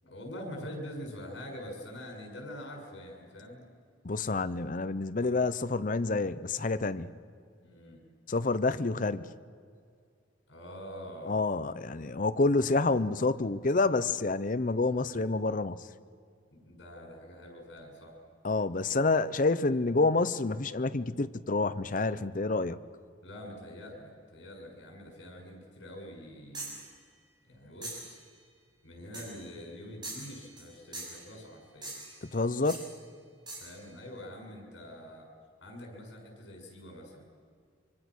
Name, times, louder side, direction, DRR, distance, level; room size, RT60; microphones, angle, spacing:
voice 1, 0.0-3.7 7.6-8.0 10.5-11.4 14.8-15.1 16.5-18.2 23.2-26.7 27.4-28.2 28.8-31.9 33.5-35.3 35.6-37.3, equal, 75° left, 1 dB, 6.6 m, -45 dB
voice 2, 4.0-7.1 8.3-9.3 11.2-15.8 18.4-22.8 32.3-32.9, left 3 dB, 45° left, 13 dB, 0.7 m, -28 dB
sound 1, 26.5-26.9 27.8-28.1 29.1-29.4 30.0-30.7 30.9-31.3 31.8-32.2 32.7-32.9 33.5-33.7, right 2 dB, 25° right, 6.5 m, -42 dB
25.5 x 24.5 x 6.3 m, 2.2 s
head